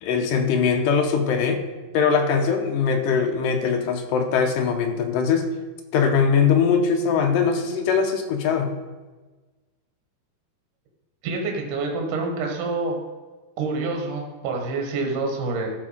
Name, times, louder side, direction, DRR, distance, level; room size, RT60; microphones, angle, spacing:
voice 1, 0.0-1.6 1.9-5.5 5.9-8.7, left 6 dB, 75° left, 5 dB, 2.1 m, -21 dB
voice 2, 11.2-13.0 13.6-15.7, right 3 dB, 60° right, 2 dB, 2.6 m, -27 dB
14.0 x 4.7 x 5.0 m, 1.3 s
omnidirectional pair, 4.6 m